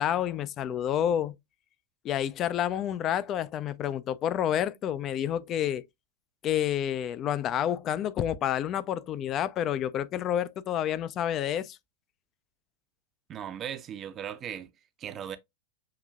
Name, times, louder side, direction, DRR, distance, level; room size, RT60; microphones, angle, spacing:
voice 1, 0.0-1.4 2.0-5.8 6.4-11.8, left 10 dB, 30° left, 0.4 m, -29 dB
voice 2, 13.3-14.7 15.0-15.4, right 9 dB, 30° right, 0.6 m, -37 dB
6.4 x 2.7 x 2.3 m
figure-of-eight pair, 90°, 0 cm